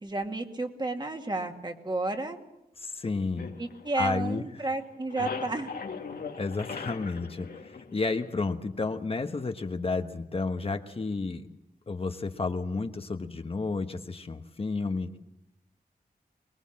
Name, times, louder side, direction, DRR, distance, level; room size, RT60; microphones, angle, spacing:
voice 1, 0.0-2.4 3.6-5.7, right 2 dB, 30° right, 4 dB, 2.3 m, -32 dB
voice 2, 2.8-3.5 4.0-4.4 6.3-11.4 11.9-15.2, left 3 dB, 40° left, 7 dB, 1.2 m, -31 dB
sound 1, 3.4-4.5 4.8-8.5, left 5 dB, 80° left, 2.2 m, -40 dB
24.0 x 21.0 x 7.5 m, 0.85 s
wide cardioid pair, 145°, 15 cm